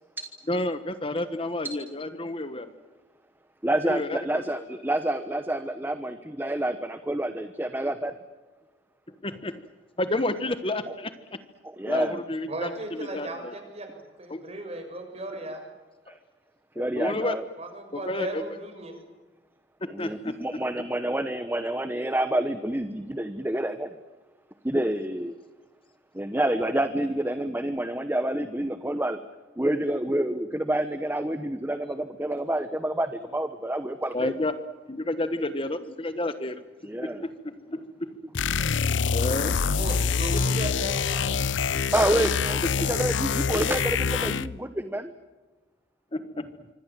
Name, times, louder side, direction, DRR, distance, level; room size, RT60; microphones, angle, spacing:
voice 1, 0.5-2.7 3.8-4.6 9.1-9.6 10.0-11.1 11.9-13.5 14.3-14.4 16.1-16.2 16.8-17.4 17.9-18.4 19.8-20.4 34.1-34.5 34.9-36.6 37.0-38.2 39.1-39.6 42.8-42.9 46.1-46.7, left 1 dB, 30° left, 11 dB, 1.2 m, -31 dB
voice 2, 3.6-8.1 11.6-12.2 16.1-16.2 16.8-17.4 19.9-23.9 24.6-25.3 26.1-29.2 29.6-34.3 36.8-37.3 38.9-39.1 41.9-42.6 42.9-45.1, right 1 dB, 10° right, 10 dB, 1.0 m, -28 dB
voice 3, 12.5-15.6 17.6-19.0 20.0-20.1 39.8-41.4 41.6-41.7, right 1 dB, 35° right, 5 dB, 6.6 m, -36 dB
sound 1, 38.3-44.6, left 5 dB, 85° left, 0.8 m, -25 dB
26.5 x 25.0 x 7.5 m, 1.2 s
head